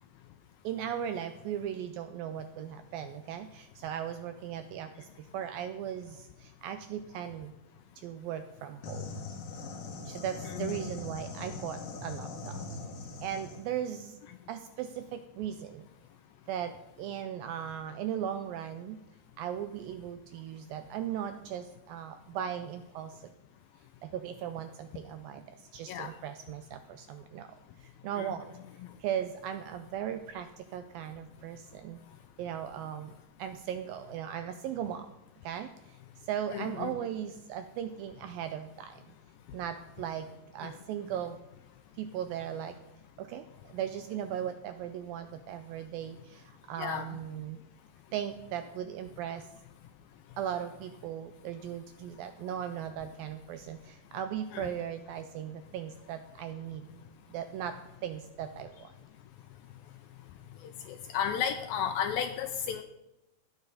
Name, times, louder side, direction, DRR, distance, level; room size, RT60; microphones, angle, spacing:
voice 1, 0.6-7.5 8.0-9.2 10.1-12.6 13.2-14.2 14.5-15.9 16.5-19.0 19.4-23.3 24.0-28.5 29.0-32.0 32.4-33.1 33.4-35.1 35.4-39.0 39.5-41.4 41.9-42.8 43.2-47.6 48.1-49.5 50.4-57.0 57.3-58.9, right 9 dB, 85° right, 9 dB, 2.1 m, -38 dB
sound 1, 8.8-13.6, left 4 dB, 60° left, 3.1 m, -41 dB
voice 2, 10.5-10.8 25.9-26.1 28.2-28.3 36.5-36.9 40.6-40.8 46.8-47.1 54.5-54.7 60.6-62.8, left 8 dB, 85° left, 7 dB, 2.1 m, -33 dB
16.0 x 9.7 x 4.0 m, 0.94 s
omnidirectional pair, 4.7 m